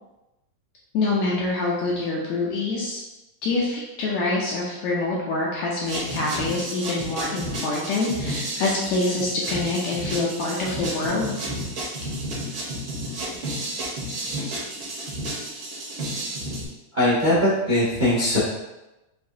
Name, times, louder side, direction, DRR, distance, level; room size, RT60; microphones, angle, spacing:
voice 1, 0.9-3.0 3.4-11.4, left 3 dB, 80° left, -4 dB, 1.7 m, -25 dB
sound 1, 5.8-16.7, right 1 dB, 55° right, 1.2 m, -31 dB
voice 2, 16.9-18.4, left 1 dB, 75° right, -11 dB, 0.4 m, -20 dB
6.6 x 2.8 x 2.7 m, 0.99 s
omnidirectional pair, 3.8 m